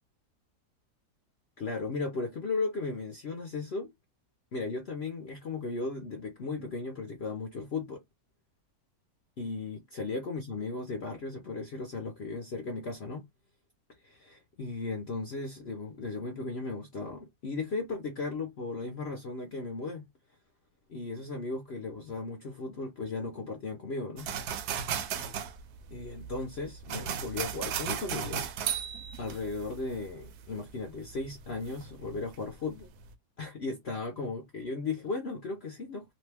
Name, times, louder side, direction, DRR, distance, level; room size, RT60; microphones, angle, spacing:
voice 1, 1.6-3.9 4.5-8.0 9.4-13.2 14.0-20.1 20.9-24.3 25.9-28.4 29.2-32.9 33.4-36.1, left 3 dB, 60° left, 0.7 m, -36 dB
sound 1, 24.2-32.4 32.8-33.1, right 8 dB, 70° right, 1.0 m, -36 dB
2.9 x 2.2 x 3.2 m
omnidirectional pair, 1.9 m